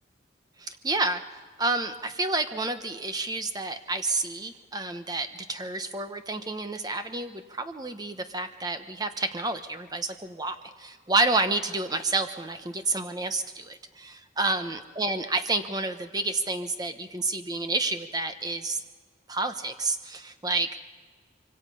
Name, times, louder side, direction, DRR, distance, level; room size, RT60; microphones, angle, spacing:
voice 1, 0.6-18.8 19.3-20.8, right 3 dB, 20° right, 9 dB, 1.1 m, -29 dB
25.5 x 24.0 x 5.5 m, 1.5 s
head